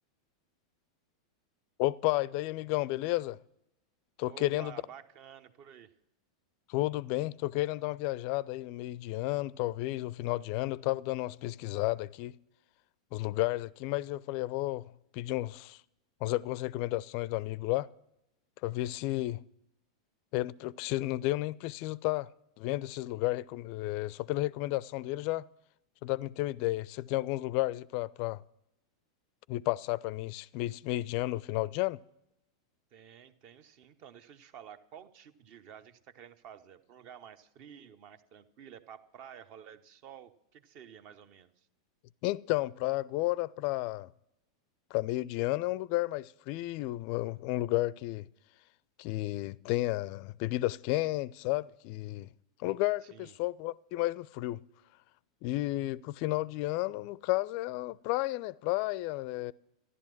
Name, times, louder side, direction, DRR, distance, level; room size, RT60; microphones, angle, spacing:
voice 1, 1.8-3.4 4.2-4.7 6.7-12.3 13.1-15.8 16.2-17.9 18.6-19.4 20.3-22.3 22.6-25.5 26.0-28.4 29.5-32.0 42.2-44.1 44.9-48.3 49.0-52.3 52.6-54.6 55.4-59.5, left 18 dB, 45° left, 0.4 m, -32 dB
voice 2, 4.2-5.9 32.9-41.7 53.0-53.3, right 9 dB, 40° right, 0.9 m, -51 dB
14.0 x 11.0 x 6.0 m
figure-of-eight pair, 90°, 2 cm